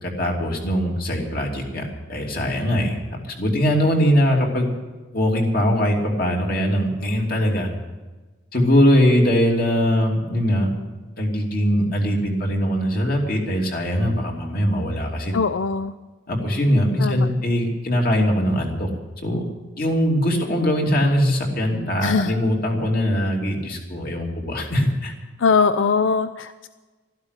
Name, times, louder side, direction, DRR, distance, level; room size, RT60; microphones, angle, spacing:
voice 1, 0.0-1.8 2.1-4.7 5.1-7.7 8.5-10.7 11.2-15.3 16.3-18.9 19.2-19.4 19.8-25.1, equal, 50° left, 0 dB, 2.9 m, -21 dB
voice 2, 15.3-15.9 17.0-17.3 22.0-22.3 25.4-26.7, left 5 dB, 85° left, 12 dB, 0.5 m, -21 dB
13.0 x 12.0 x 8.1 m, 1.2 s
head